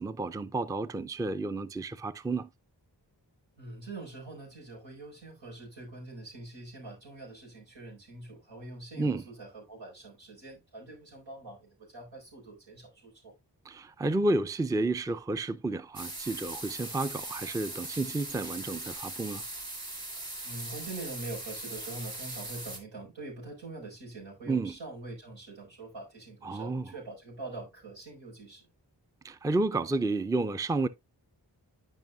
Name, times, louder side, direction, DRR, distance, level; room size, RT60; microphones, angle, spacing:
voice 1, 0.0-2.5 9.0-9.2 13.7-19.4 24.5-24.7 26.4-26.9 29.2-30.9, right 2 dB, 10° right, 0.4 m, -31 dB
voice 2, 3.6-13.3 20.4-28.6, right 2 dB, 90° right, 4.7 m, -44 dB
sound 1, 16.0-22.8, right 2 dB, 55° right, 2.2 m, -40 dB
11.0 x 5.4 x 2.3 m
cardioid pair, 45°, 43 cm